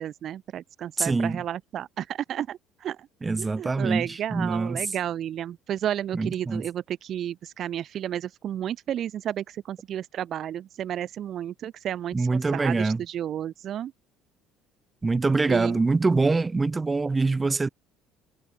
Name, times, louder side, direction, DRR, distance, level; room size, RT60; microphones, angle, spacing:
voice 1, 0.0-3.1 3.4-13.9 15.5-15.8, right 10 dB, 45° right, 1.0 m, -32 dB
voice 2, 1.0-1.4 3.2-4.8 6.1-6.6 12.1-13.0 15.0-17.7, right 3 dB, 15° right, 1.8 m, -24 dB
cardioid pair, 145°, 0 cm